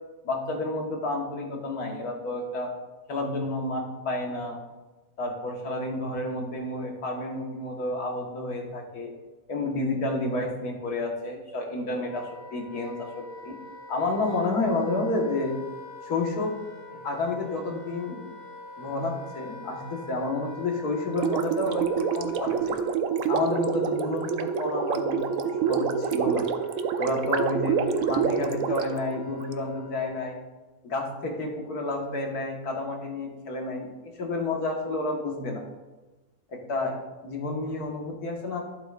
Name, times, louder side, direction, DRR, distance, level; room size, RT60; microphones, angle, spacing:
voice 1, 0.2-2.7 3.1-4.6 5.2-9.1 9.5-13.6 13.9-15.5 16.0-16.5 17.0-18.2 18.8-21.9 22.1-22.7 23.3-26.4 27.0-30.4 30.8-33.9 34.2-35.6 36.5-36.9 37.2-38.6, left 2 dB, 90° left, 0 dB, 2.0 m, -30 dB
Wind instrument woodwind instrument, 11.5-30.4, left 2 dB, 70° left, 1.7 m, -45 dB
Gurgling, 21.1-29.5, right 7 dB, 70° right, 1.0 m, -27 dB
11.0 x 7.9 x 2.5 m, 1.2 s
omnidirectional pair, 1.6 m